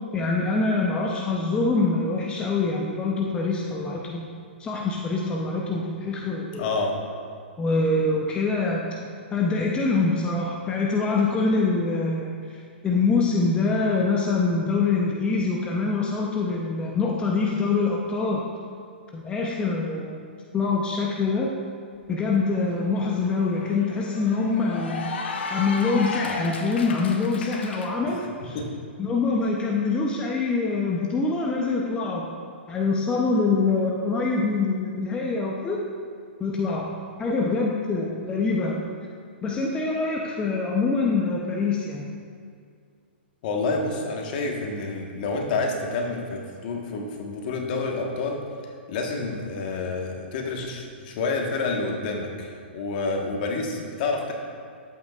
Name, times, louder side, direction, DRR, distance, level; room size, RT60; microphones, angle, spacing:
voice 1, 0.1-6.7 7.6-8.8 9.3-12.6 12.8-18.4 19.1-20.2 20.5-21.5 22.1-28.6 29.0-32.3 32.7-35.8 36.4-36.9 37.2-38.8 39.4-42.1, left 3 dB, 15° left, -1 dB, 0.7 m, -25 dB
voice 2, 6.6-6.9 28.4-28.7 43.4-48.4 48.9-54.3, left 3 dB, 50° left, 1 dB, 1.4 m, -28 dB
Cheering / Applause, 22.0-22.1 22.5-27.9, left 4 dB, 75° left, 0.9 m, -34 dB
11.5 x 8.3 x 2.4 m, 2.2 s
hypercardioid pair, 135°, 6 cm